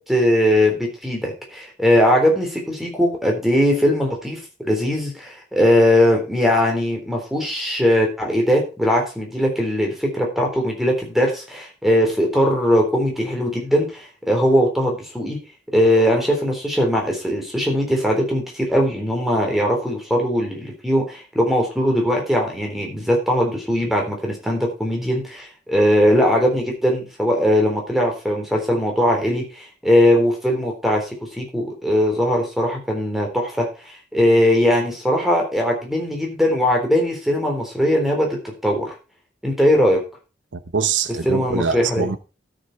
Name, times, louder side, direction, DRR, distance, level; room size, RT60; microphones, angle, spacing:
voice 1, 0.1-15.4 15.7-38.9 39.4-40.0 41.3-42.1, equal, ahead, 3.6 m, -20 dB
voice 2, 40.7-42.2, right 5 dB, 80° right, 0.8 m, -23 dB
13.0 x 6.7 x 4.6 m
head